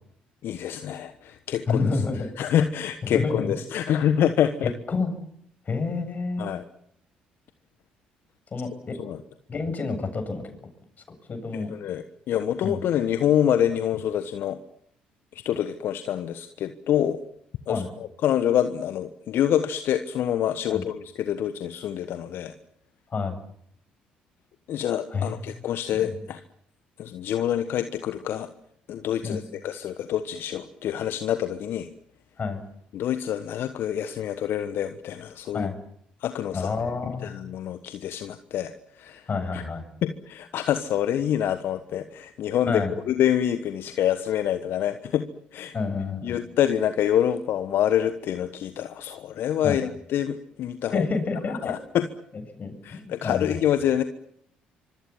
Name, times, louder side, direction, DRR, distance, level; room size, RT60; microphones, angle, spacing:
voice 1, 0.4-1.8 2.4-4.7 6.4-6.6 9.0-9.2 11.5-14.6 15.3-17.2 17.7-17.8 18.2-22.5 24.7-26.4 27.0-28.5 28.9-31.9 32.9-35.7 36.2-36.7 37.2-39.3 39.5-39.6 40.0-42.8 43.1-45.7 46.2-51.1 51.6-52.1 52.8-54.0, left 10 dB, 60° left, 10 dB, 1.3 m, -26 dB
voice 2, 1.7-2.3 3.0-3.5 4.9-5.1 5.7-6.5 8.5-9.0 9.5-10.5 11.3-11.7 12.6-12.8 17.7-17.9 20.7-20.8 23.1-23.4 25.1-25.6 26.0-26.2 29.2-29.4 32.4-32.6 35.5-35.7 36.5-37.3 39.3-39.8 42.7-42.9 45.7-46.4 49.6-49.8 50.9-51.8 52.6-53.6, left 4 dB, 40° left, 7 dB, 7.7 m, -28 dB
25.5 x 24.0 x 7.3 m, 0.71 s
hypercardioid pair, 50°, 4 cm